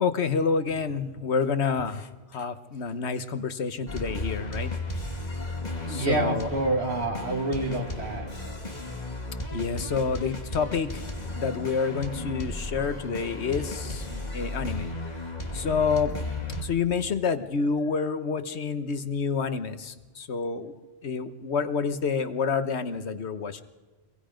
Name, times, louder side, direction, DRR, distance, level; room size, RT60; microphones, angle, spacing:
voice 1, 0.0-4.7 5.9-6.5 9.5-11.0 11.3-14.9 15.5-16.1 16.6-20.7 21.0-23.6, left 5 dB, 80° left, 10 dB, 1.4 m, -28 dB
sound 1, 3.9-16.6, left 2 dB, 40° left, 2.5 m, -34 dB
voice 2, 5.8-8.3, right 2 dB, 80° right, 3 dB, 2.6 m, -28 dB
26.0 x 22.0 x 5.1 m, 1.2 s
omnidirectional pair, 1.1 m